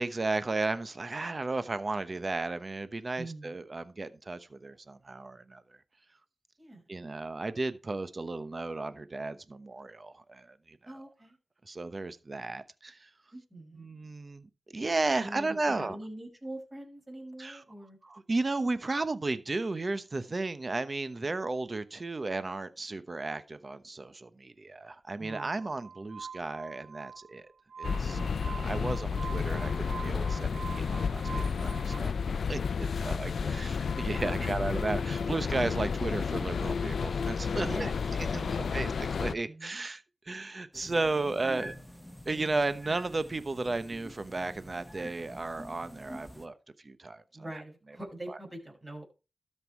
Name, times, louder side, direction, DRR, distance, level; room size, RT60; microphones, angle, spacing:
voice 1, 0.0-5.6 6.9-10.9 11.6-13.1 13.7-16.0 17.4-17.6 18.0-27.5 27.8-28.2 28.4-29.7 30.0-37.9 38.3-41.7 42.3-46.6 46.8-47.2 47.5-47.6 48.3-48.4, right 3 dB, 40° right, 0.9 m, -34 dB
voice 2, 3.2-3.5 6.6-6.8 10.9-11.4 13.3-13.9 15.2-18.0 21.4-21.5 25.2-25.5 28.1-28.6 33.0-33.1 33.4-33.6 33.9-34.5 37.6-37.9 38.4-38.9 39.3-39.8 41.1-41.7 47.3-49.1, right 1 dB, 20° right, 5.6 m, -43 dB
Glass, 25.3-32.0, right 6 dB, 75° right, 1.9 m, -45 dB
sound 1, 27.8-39.3, left 5 dB, 75° left, 0.5 m, -31 dB
sound 2, 40.7-46.5, equal, 5° left, 1.2 m, -48 dB
12.5 x 5.5 x 4.5 m
cardioid pair, 55°, 0 cm